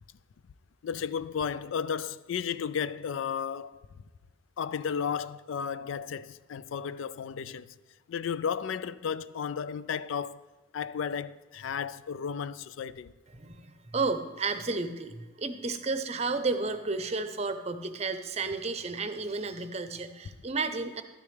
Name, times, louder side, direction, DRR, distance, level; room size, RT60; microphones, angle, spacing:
voice 1, 0.8-3.8 4.6-7.7 8.1-10.4 10.7-13.1, left 7 dB, 80° left, 0.4 m, -33 dB
voice 2, 13.4-21.0, right 3 dB, 35° right, 0.6 m, -32 dB
12.0 x 10.0 x 3.3 m
head